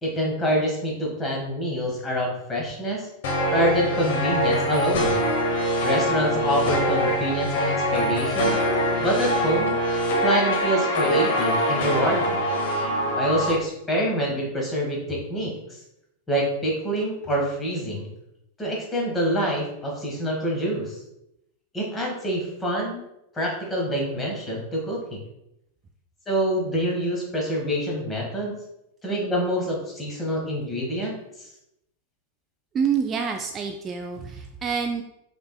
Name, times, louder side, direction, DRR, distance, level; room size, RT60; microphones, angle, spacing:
voice 1, 0.0-3.1 3.5-5.2 5.8-8.6 9.0-9.8 10.2-12.4 13.1-15.8 16.3-18.1 18.6-21.0 21.7-23.0 23.3-25.2 26.3-28.6 29.0-31.5, equal, 15° left, -1 dB, 1.3 m, -26 dB
sound 1, 3.2-13.5, equal, 55° left, 0.8 m, -24 dB
voice 2, 32.7-35.0, right 6 dB, 25° right, 3 dB, 0.3 m, -27 dB
5.1 x 3.4 x 2.2 m, 0.83 s
figure-of-eight pair, 90°, 0 cm